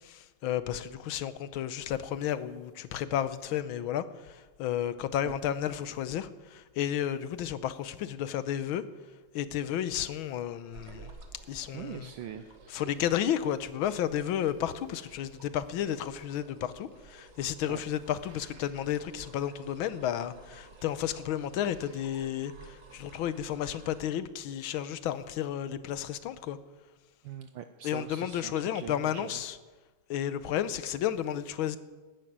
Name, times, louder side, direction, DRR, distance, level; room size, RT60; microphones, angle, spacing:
voice 1, 0.0-8.8 9.3-11.1 11.5-12.1 12.7-26.6 27.8-29.6 30.1-31.8, left 10 dB, 75° left, 13 dB, 1.5 m, -32 dB
sound 1, 10.7-24.1, right 3 dB, 40° right, 1.3 m, -53 dB
voice 2, 11.7-12.9 17.7-17.8 27.2-29.4, right 10 dB, 75° right, 8 dB, 1.4 m, -42 dB
13.5 x 10.0 x 9.4 m, 1.3 s
omnidirectional pair, 2.3 m